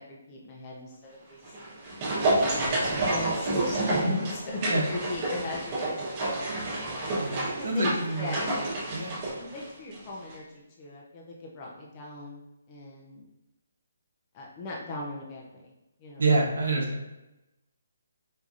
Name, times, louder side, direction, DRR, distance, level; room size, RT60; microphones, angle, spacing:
voice 1, 0.0-1.4 2.3-4.0 4.6-7.1 7.5-8.5 9.3-12.4 12.7-13.3 14.3-15.7 16.0-16.2, left 2 dB, 20° left, -3 dB, 0.4 m, -40 dB
sound 1, 1.4-10.0 10.3-10.4, right 2 dB, 25° right, 1.1 m, -29 dB
voice 2, 7.2-8.4 8.9-9.2 16.2-17.0, right 2 dB, 75° right, -2 dB, 0.9 m, -27 dB
4.6 x 2.6 x 2.4 m, 0.96 s
hypercardioid pair, 170°, 0 cm